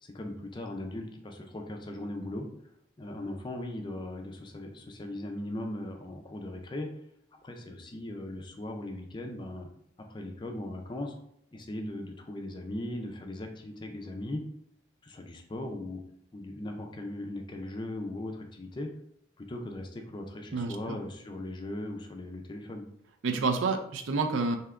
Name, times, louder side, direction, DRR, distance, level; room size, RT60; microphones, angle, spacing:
voice 1, 0.0-2.5 3.0-6.9 7.4-9.7 10.1-11.1 11.5-14.4 15.0-16.0 16.3-18.9 19.4-22.8, left 1 dB, 25° left, 3 dB, 0.4 m, -38 dB
voice 2, 20.5-21.0 23.2-24.6, right 4 dB, 80° right, 5 dB, 0.4 m, -29 dB
3.3 x 2.7 x 2.4 m, 0.71 s
head